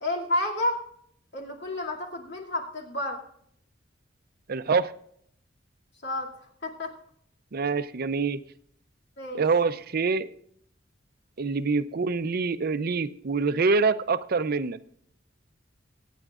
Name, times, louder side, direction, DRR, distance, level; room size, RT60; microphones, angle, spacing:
voice 1, 0.0-0.8 1.3-3.2 6.0-6.3 6.6-6.9 9.2-9.4, left 1 dB, 65° left, -1 dB, 2.3 m, -30 dB
voice 2, 4.5-4.9 7.5-8.4 9.3-10.3 11.4-14.8, right 4 dB, 55° right, 13 dB, 0.5 m, -25 dB
24.5 x 9.1 x 2.4 m, 0.68 s
head